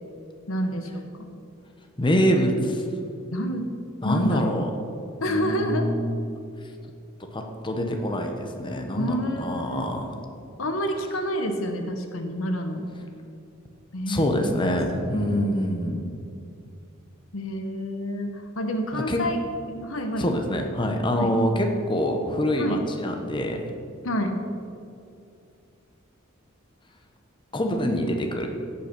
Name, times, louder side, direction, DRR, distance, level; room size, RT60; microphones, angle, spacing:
voice 1, 0.5-1.3 3.3-3.7 4.0-4.6 5.2-5.9 8.9-9.9 10.6-12.8 13.9-14.5 14.9-15.1 17.3-19.4 19.7-20.3 21.1-21.4 22.6-22.9 24.0-24.4, equal, 75° left, 6 dB, 1.1 m, -28 dB
voice 2, 2.0-2.8 4.0-4.7 5.3-6.2 7.2-10.2 14.1-16.1 18.9-19.2 20.2-23.7 27.5-28.5, equal, 25° left, 3 dB, 1.0 m, -25 dB
16.5 x 5.8 x 6.0 m, 2.5 s
head